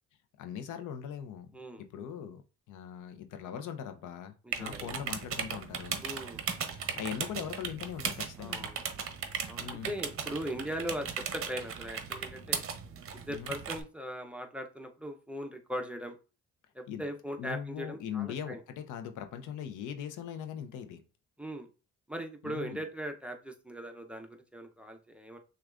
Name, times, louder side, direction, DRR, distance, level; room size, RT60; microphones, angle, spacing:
voice 1, 0.4-2.4 2.7-6.0 6.7-8.7 9.6-9.9 13.3-13.6 16.9-17.0 17.4-21.0 22.4-22.8, left 8 dB, 80° left, 0.6 m, -40 dB
voice 2, 1.5-1.8 4.4-4.9 6.0-6.4 8.4-8.8 9.5-12.6 13.1-16.2 16.7-18.6 21.4-21.7 22.1-25.4, equal, 5° right, 0.6 m, -39 dB
sound 1, 4.5-13.8, right 7 dB, 45° right, 0.7 m, -37 dB
6.1 x 2.4 x 2.4 m
cardioid pair, 90°, 30 cm